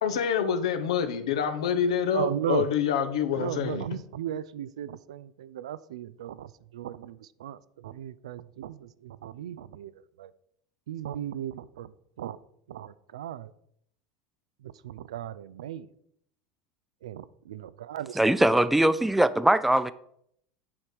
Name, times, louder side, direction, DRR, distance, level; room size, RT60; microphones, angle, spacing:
voice 1, 0.0-3.8, left 7 dB, 85° left, 0.9 m, -27 dB
voice 2, 2.1-2.7 3.3-10.3 10.9-12.4 12.7-13.5 14.6-15.9 17.0-18.2, right 10 dB, 90° right, 0.4 m, -36 dB
voice 3, 18.2-19.9, right 1 dB, 5° right, 0.4 m, -21 dB
7.2 x 4.6 x 5.0 m
supercardioid pair, 110°, 3 cm